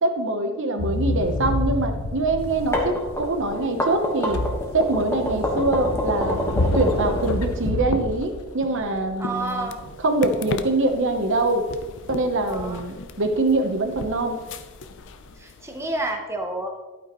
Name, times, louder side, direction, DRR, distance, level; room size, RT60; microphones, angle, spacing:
voice 1, 0.0-4.4 4.7-6.4 6.7-9.7 10.0-11.6 12.1-14.4, right 2 dB, 55° right, 6 dB, 0.9 m, -24 dB
sound 1, 0.8-15.3, left 2 dB, 90° left, 0.9 m, -30 dB
sound 2, 2.5-7.7, left 1 dB, 10° left, 1.4 m, -26 dB
voice 2, 9.2-9.8 12.5-12.8 15.6-16.7, right 2 dB, 10° right, 2 dB, 0.9 m, -29 dB
sound 3, 9.4-16.1, left 4 dB, 55° left, 0.5 m, -39 dB
11.0 x 9.1 x 3.1 m, 1.2 s
head